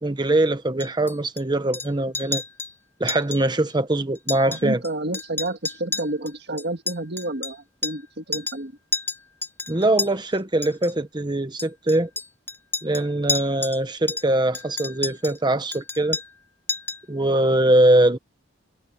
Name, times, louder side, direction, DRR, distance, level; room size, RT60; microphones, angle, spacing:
voice 1, 0.0-2.4 3.0-4.8 9.7-12.1 12.8-16.2 17.1-18.2, right 1 dB, 20° right, 0.9 m, -22 dB
Chink clink, 0.8-1.4 1.7-1.9 2.1-2.7 3.1-3.4 3.7-3.8 4.2-4.9 5.1-8.1 8.3-8.6 8.9-10.1 10.6-10.9 11.6-13.8 14.1-15.4 15.7-16.4 16.7-17.1, left 3 dB, 10° left, 4.0 m, -31 dB
voice 2, 4.5-8.7, right 2 dB, 60° right, 1.8 m, -30 dB
head